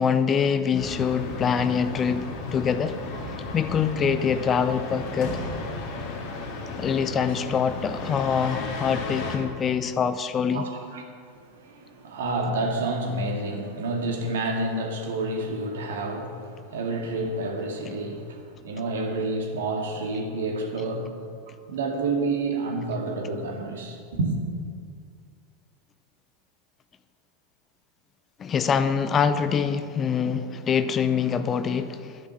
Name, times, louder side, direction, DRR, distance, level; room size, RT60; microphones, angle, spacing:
voice 1, 0.0-3.0 3.5-5.4 6.8-10.7 17.8-18.0 28.4-32.1, left 7 dB, 25° left, 12 dB, 0.6 m, -24 dB
sound 1, 0.7-9.4, left 3 dB, 45° left, 2.0 m, -34 dB
voice 2, 10.5-11.1 11.3-21.1 21.7-24.4, right 2 dB, 65° right, 2 dB, 2.1 m, -29 dB
12.0 x 10.0 x 6.1 m, 2.1 s
figure-of-eight pair, 85°, 0 cm